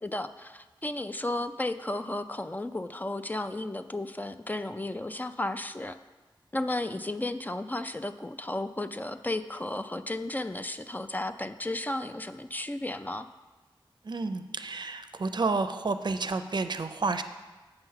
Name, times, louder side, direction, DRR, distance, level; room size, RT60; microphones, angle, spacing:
voice 1, 0.0-6.0 6.5-13.3, left 2 dB, 20° left, 10 dB, 0.4 m, -34 dB
voice 2, 14.0-17.2, right 3 dB, 55° right, 9 dB, 0.5 m, -30 dB
7.9 x 5.7 x 5.6 m, 1.2 s
wide cardioid pair, 80°, 9 cm